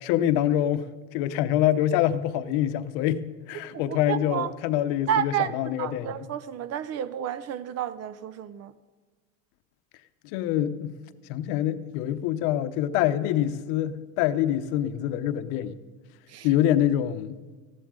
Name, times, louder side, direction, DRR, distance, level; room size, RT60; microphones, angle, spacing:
voice 1, 0.0-6.3 10.2-10.9 11.3-15.8 16.4-17.4, left 11 dB, 65° left, 0.8 m, -25 dB
voice 2, 3.7-4.5 5.1-8.7 16.3-16.5, right 10 dB, 35° right, 0.5 m, -31 dB
14.5 x 11.0 x 3.7 m
supercardioid pair, 125°, 44 cm